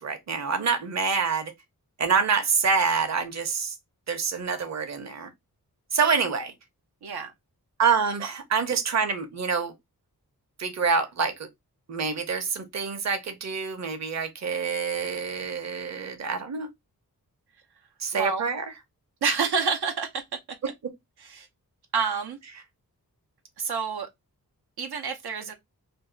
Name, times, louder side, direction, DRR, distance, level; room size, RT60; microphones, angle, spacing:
voice 1, 0.0-1.5 2.0-3.7 4.1-5.3 5.9-6.5 7.8-9.7 10.6-11.3 11.9-16.7 18.0-18.6, right 5 dB, 45° right, 0.7 m, -26 dB
voice 2, 7.0-7.3 18.1-18.5 19.2-20.2 21.2-21.5 21.9-22.4 23.6-24.1 24.8-25.5, right 5 dB, 90° right, 0.7 m, -28 dB
2.7 x 2.3 x 3.8 m
wide cardioid pair, 95°, 37 cm